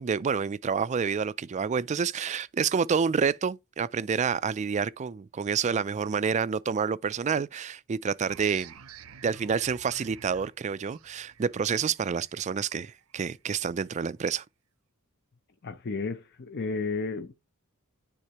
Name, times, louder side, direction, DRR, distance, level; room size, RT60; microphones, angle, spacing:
voice 1, 0.0-8.7 9.2-14.4, right 6 dB, 30° right, 0.3 m, -28 dB
sound 1, 8.3-13.6, right 7 dB, 70° right, 0.6 m, -50 dB
voice 2, 15.6-17.3, left 4 dB, 50° left, 0.6 m, -32 dB
9.8 x 3.7 x 2.9 m
head